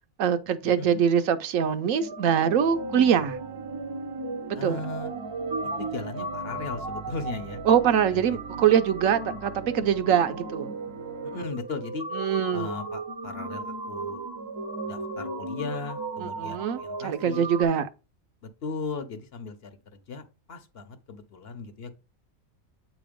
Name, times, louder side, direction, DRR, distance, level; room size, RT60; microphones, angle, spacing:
voice 1, 0.2-3.4 4.5-4.8 7.7-10.7 12.1-12.7 16.2-17.9, right 8 dB, 75° right, 1.0 m, -23 dB
sound 1, 2.0-17.6, right 2 dB, 30° right, 0.4 m, -36 dB
sound 2, 2.5-11.5, right 6 dB, 55° right, 0.7 m, -43 dB
voice 2, 4.5-5.1 5.8-7.6 8.1-8.4 11.2-12.0 12.5-14.2 14.8-17.5 18.4-21.9, left 4 dB, 55° left, 0.9 m, -37 dB
8.4 x 3.0 x 5.0 m
omnidirectional pair, 1.4 m